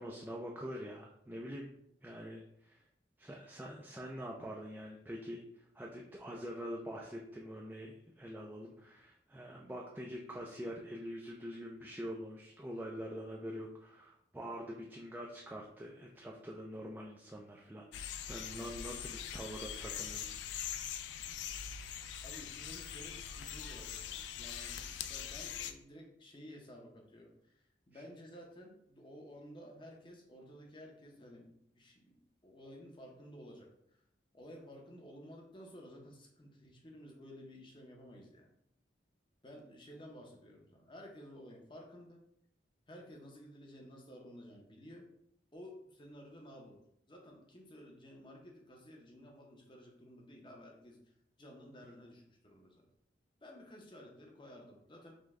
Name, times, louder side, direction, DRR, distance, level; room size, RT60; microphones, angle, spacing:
voice 1, 0.0-1.7 2.0-2.8 3.2-5.4 5.7-20.3 27.9-28.0, equal, 10° right, -1 dB, 0.3 m, -45 dB
sound 1, 17.9-25.7, left 8 dB, 75° left, 0.3 m, -42 dB
voice 2, 22.2-33.7 34.3-38.5 39.4-42.2 42.9-45.1 45.5-46.8 47.1-51.0 51.4-52.9 53.4-55.1, equal, 25° left, 0 dB, 0.7 m, -53 dB
5.1 x 2.2 x 3.5 m, 0.75 s
head